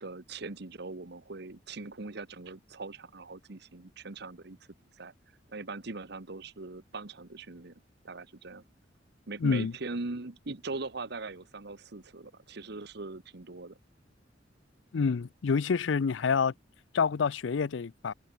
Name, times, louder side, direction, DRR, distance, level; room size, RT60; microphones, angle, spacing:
voice 1, 0.0-4.6 5.0-5.1 5.5-7.7 8.0-8.6 9.3-13.8, right 3 dB, 60° right, 1.3 m, -41 dB
voice 2, 9.4-9.7 14.9-16.5 16.9-18.1, left 5 dB, 85° left, 0.5 m, -27 dB
head